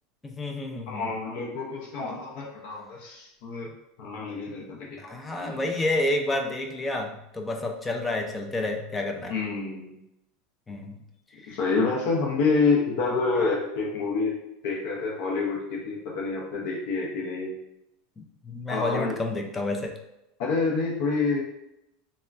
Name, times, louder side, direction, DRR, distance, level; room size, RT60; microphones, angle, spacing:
voice 1, 0.2-1.1 5.0-9.3 10.7-11.0 11.4-11.6 18.2-19.9, left 2 dB, 10° left, 3 dB, 0.3 m, -30 dB
voice 2, 0.9-3.7 4.0-4.8 5.0-5.6 9.3-10.0 11.5-14.4 14.6-17.5 18.7-19.2 20.4-21.4, left 4 dB, 60° left, -2 dB, 0.6 m, -27 dB
3.3 x 2.1 x 2.4 m, 0.87 s
supercardioid pair, 150°, 0 cm